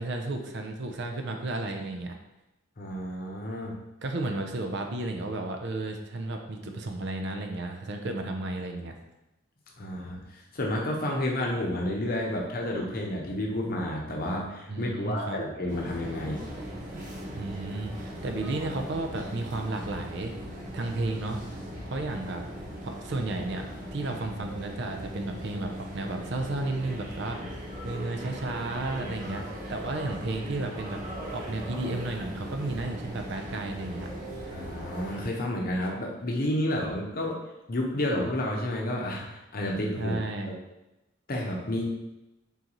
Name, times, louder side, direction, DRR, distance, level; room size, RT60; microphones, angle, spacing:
voice 1, 0.0-2.2 4.0-8.9 14.7-15.4 17.3-20.3 20.7-21.4 21.9-22.4 22.8-27.4 27.8-29.4 29.7-34.1 40.0-40.5, right 2 dB, 55° right, 4 dB, 0.5 m, -33 dB
voice 2, 2.8-3.7 9.8-16.5 34.5-37.4 37.7-40.2 40.5-40.6 41.3-41.8, left 1 dB, 45° left, -1 dB, 0.8 m, -30 dB
sound 1, 15.7-35.3, equal, 40° right, 1.1 m, -39 dB
3.9 x 3.8 x 3.0 m, 0.96 s
head